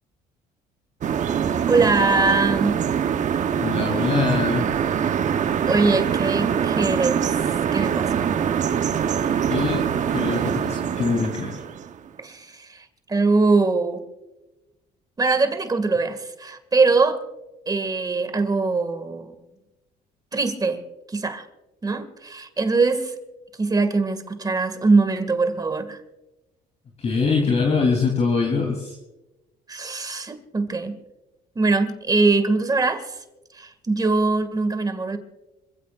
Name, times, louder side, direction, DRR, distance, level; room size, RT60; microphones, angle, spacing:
sound 1, 1.0-12.1, right 8 dB, 45° right, 1.0 m, -24 dB
voice 1, 1.7-2.8 5.6-8.4 12.2-14.0 15.2-17.2 17.7-19.3 20.3-20.8 21.1-21.5 21.8-23.2 23.6-26.0 29.7-31.0 31.6-33.2 33.5-35.2, right 3 dB, 25° right, 8 dB, 2.1 m, -22 dB
voice 2, 3.5-4.7 9.5-11.6 27.0-29.0, left 4 dB, 40° left, 1 dB, 3.3 m, -23 dB
27.0 x 16.0 x 2.5 m, 0.99 s
cardioid pair, 110°, 17 cm